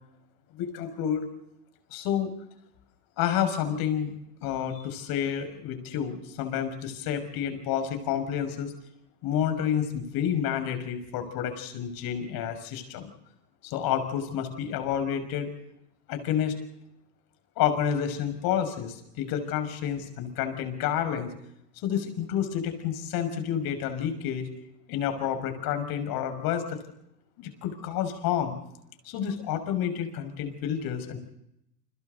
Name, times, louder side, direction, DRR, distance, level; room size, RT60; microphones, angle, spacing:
voice 1, 0.5-1.3 1.9-2.3 3.2-4.1 4.4-8.7 9.2-13.1 13.6-15.5 16.1-16.6 17.6-21.3 21.8-24.5 24.9-26.8 27.4-28.5 29.0-31.2, left 9 dB, 50° left, 8 dB, 6.3 m, -29 dB
29.5 x 26.5 x 4.1 m, 0.79 s
hypercardioid pair, 115°, 47 cm